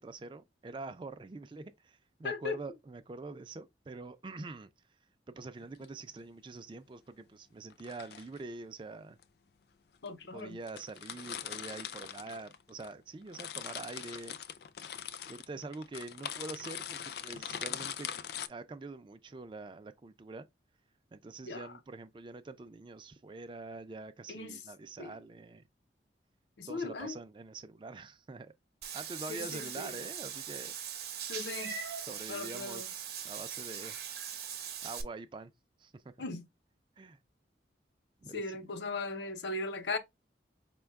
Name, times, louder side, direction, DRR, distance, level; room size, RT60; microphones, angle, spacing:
voice 1, 0.0-4.7 5.3-9.2 10.3-14.4 15.3-18.1 18.5-20.5 21.1-25.7 26.7-28.5 28.9-30.8 32.1-34.0 34.8-35.5 35.8-36.1 37.0-37.2 38.2-38.7, right 3 dB, 25° right, 0.3 m, -45 dB
voice 2, 2.2-2.6 10.0-10.6 21.4-21.7 24.3-24.6 25.0-25.1 26.6-27.2 29.3-29.9 31.3-31.8 32.3-32.9 36.2-36.5 38.3-40.0, left 3 dB, 80° left, 0.7 m, -38 dB
sound 1, 5.6-5.9 7.7-8.4 9.2-9.3 10.1-10.2 10.4-10.5 10.7-12.9 13.2-18.5, left 9 dB, 60° left, 0.3 m, -42 dB
Meow / Water / Bathtub (filling or washing), 28.8-35.0, right 8 dB, 60° right, 0.8 m, -41 dB
5.1 x 2.2 x 3.5 m
head